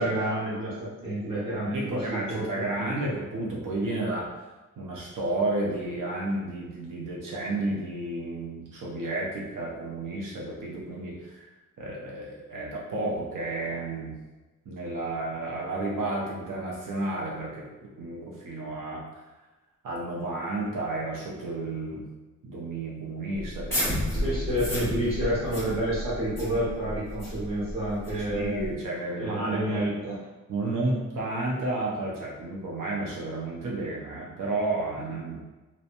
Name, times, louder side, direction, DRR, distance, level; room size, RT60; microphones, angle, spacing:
voice 1, 0.0-3.1 24.1-28.7 29.2-30.2, right 1 dB, 15° right, -9 dB, 1.1 m, -29 dB
voice 2, 1.7-4.3 4.8-11.5 11.8-14.2 14.7-19.2 19.8-22.1 22.4-24.4 28.1-30.0 30.5-35.4, right 2 dB, 85° right, -3 dB, 0.6 m, -32 dB
sound 1, 23.4-28.7, equal, 10° left, 1.0 m, -32 dB
2.9 x 2.1 x 2.5 m, 1.1 s
wide cardioid pair, 155°, 32 cm